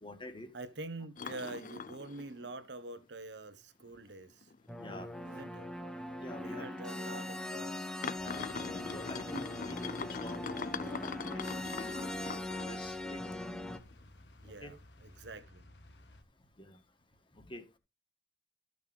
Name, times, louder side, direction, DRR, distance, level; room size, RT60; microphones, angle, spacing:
voice 1, 0.0-0.5 4.8-5.1 6.2-6.7 6.9-7.2 8.9-12.1 12.7-13.5 14.6-14.7 16.6-16.7 17.5-17.6, left 1 dB, 30° left, 1.6 m, -47 dB
voice 2, 0.5-4.5 5.2-5.7 6.4-7.7 14.4-14.8 15.0-15.6, right 2 dB, 80° right, 1.1 m, -45 dB
sound 1, 1.2-2.6 3.0-3.1 3.8-3.9 4.4-4.6 4.9-5.0 5.9-6.0 6.8-6.9 8.0-12.9 13.3-14.0 14.4-14.5, left 5 dB, 50° left, 0.5 m, -42 dB
sound 2, 4.7-13.8, left 1 dB, 5° left, 1.1 m, -41 dB
sound 3, 8.2-16.2, left 1 dB, 75° left, 1.5 m, -57 dB
14.0 x 6.7 x 3.5 m
head